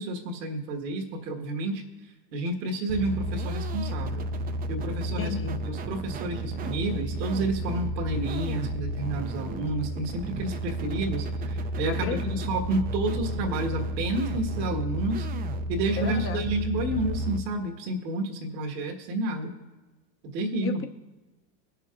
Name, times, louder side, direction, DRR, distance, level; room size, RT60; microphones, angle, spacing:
voice 1, 0.0-1.8 2.3-4.2 4.7-5.3 5.6-15.3 15.7-19.5 20.3-20.8, right 2 dB, 85° right, 2 dB, 1.7 m, -30 dB
sound 1, 2.9-17.4, right 1 dB, 20° right, 0.3 m, -32 dB
voice 2, 5.2-5.6 11.9-12.4 16.0-16.5 20.6-20.9, left 7 dB, 25° left, 9 dB, 0.6 m, -33 dB
20.0 x 6.7 x 2.5 m, 1.2 s
supercardioid pair, 105°, 49 cm